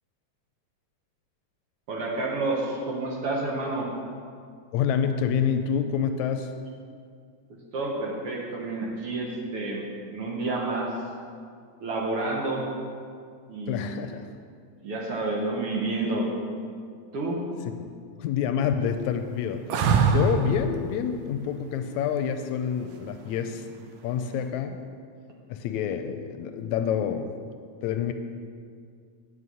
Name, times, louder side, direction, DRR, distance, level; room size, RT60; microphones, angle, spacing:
voice 1, 1.9-3.9 7.5-10.9 11.8-12.7 13.5-13.9 14.8-16.3 17.1-17.4, right 2 dB, 60° right, -2 dB, 1.8 m, -29 dB
voice 2, 4.7-6.5 13.7-14.3 18.2-19.6 20.0-23.7 24.0-24.8 25.5-27.3 27.8-28.1, left 8 dB, 80° left, 7 dB, 1.8 m, -27 dB
sound 1, 19.7-20.6 23.2-23.8, right 5 dB, 75° right, 1.7 m, -22 dB
9.4 x 5.7 x 8.3 m, 2.2 s
omnidirectional pair, 3.4 m